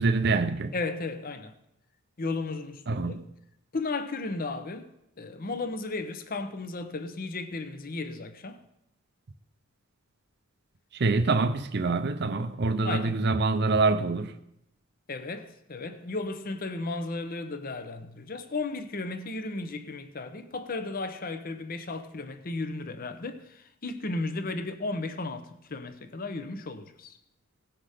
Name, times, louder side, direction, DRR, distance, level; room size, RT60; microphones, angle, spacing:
voice 1, 0.0-0.7 2.9-3.2 10.9-14.3, right 3 dB, 50° right, 0.6 m, -25 dB
voice 2, 0.7-1.6 2.2-3.2 3.7-4.9 5.2-8.6 12.8-13.2 15.1-27.2, left 3 dB, 40° left, 0.7 m, -34 dB
17.5 x 5.9 x 5.0 m
head